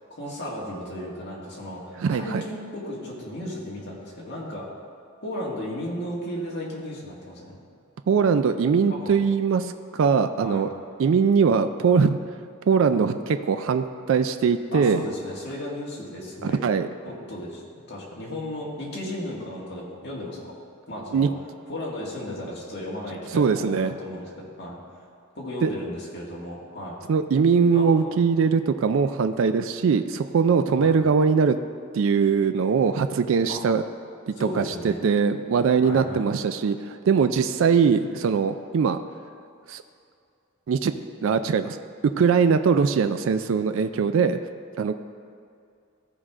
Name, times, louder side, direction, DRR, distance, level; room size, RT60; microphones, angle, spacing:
voice 1, 0.1-4.7 5.2-7.6 8.9-9.1 10.4-10.6 14.7-16.6 17.1-20.5 20.9-21.3 21.7-24.8 25.4-27.0 27.7-28.1 30.8-31.0 33.5-33.6 34.4-35.0 35.8-36.3, left 1 dB, 50° left, -5 dB, 1.9 m, -35 dB
voice 2, 2.0-2.4 8.1-10.7 11.0-12.2 12.7-15.1 16.4-16.9 21.1-21.3 23.3-23.9 25.6-25.7 27.1-31.6 31.9-33.8 34.3-39.0 39.7-39.8 40.7-40.9 41.2-41.8 42.2-44.4 44.8-44.9, right 6 dB, 65° right, 9 dB, 0.3 m, -21 dB
14.5 x 4.8 x 3.7 m, 2.4 s
head